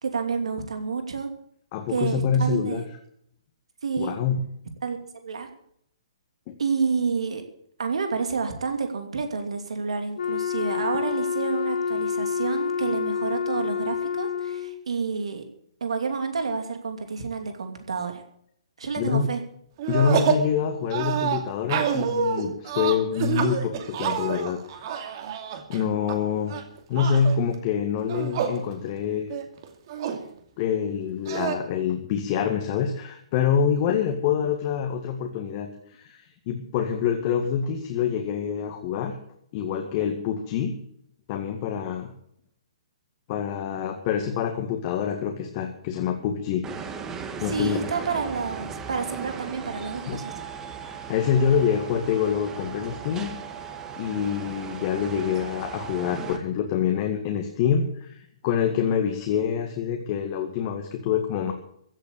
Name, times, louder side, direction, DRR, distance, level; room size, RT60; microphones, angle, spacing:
voice 1, 0.0-1.3 1.9-2.8 3.8-4.2 4.8-5.5 6.6-7.4 7.8-15.4 15.8-18.2 18.8-19.4 47.5-50.3, right 5 dB, 75° right, 6 dB, 2.7 m, -29 dB
voice 2, 1.7-2.8 4.0-4.4 6.5-6.6 19.0-19.3 19.9-24.9 25.7-26.5 26.9-29.3 30.6-39.2 39.5-40.8 41.3-42.1 43.3-46.6 47.4-47.8 50.1-50.2 51.1-53.3 54.0-61.5, left 7 dB, 40° left, 4 dB, 2.0 m, -26 dB
Wind instrument woodwind instrument, 10.2-14.8, left 7 dB, 75° left, 1.2 m, -28 dB
sound 1, 19.8-20.5 20.9-26.2 26.5-27.4 28.0-28.6 29.0-29.1 29.3-30.2 31.3-31.6, right 7 dB, 45° right, 2.6 m, -27 dB
sound 2, 46.6-56.4, right 6 dB, 15° right, 2.0 m, -37 dB
15.5 x 8.2 x 8.5 m, 0.69 s
hypercardioid pair, 130°, 3 cm